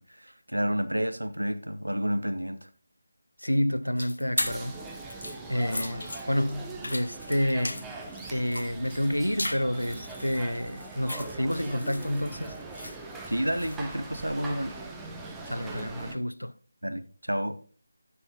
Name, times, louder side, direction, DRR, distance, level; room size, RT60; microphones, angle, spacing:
voice 1, 0.2-2.7 13.3-14.8 16.8-17.6, equal, 85° right, 0.9 m, -30 dB
voice 2, 3.4-4.8 5.5-7.9 8.3-12.6 15.5-16.5, equal, 90° left, 0.5 m, -29 dB
sound 1, 4.0-13.9, left 1 dB, 65° left, 1.0 m, -38 dB
sound 2, 4.4-16.2, right 3 dB, 5° right, 0.7 m, -41 dB
9.6 x 5.6 x 3.9 m
figure-of-eight pair, 160°, 0 cm